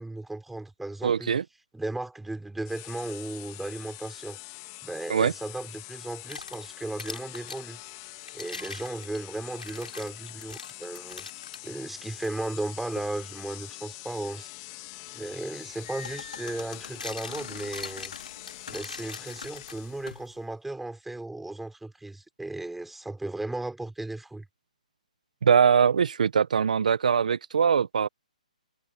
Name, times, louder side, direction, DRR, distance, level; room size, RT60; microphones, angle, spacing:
voice 1, 0.0-1.4 1.7-4.4 4.8-7.8 8.3-11.3 11.6-14.5 15.1-18.1 18.7-24.5, right 2 dB, 5° right, 4.0 m, -36 dB
voice 2, 1.0-1.4 5.1-5.3 25.4-28.1, right 7 dB, 70° right, 1.0 m, -22 dB
sound 1, 2.6-20.2, left 27 dB, 35° left, 2.1 m, -44 dB
sound 2, 6.0-7.7 8.2-11.7 12.2-12.3 13.0-13.2 15.3-15.4 16.6-20.1, left 3 dB, 90° left, 8.0 m, -42 dB
sound 3, 15.4-20.4, left 6 dB, 75° left, 2.7 m, -45 dB
hypercardioid pair, 135°, 4 cm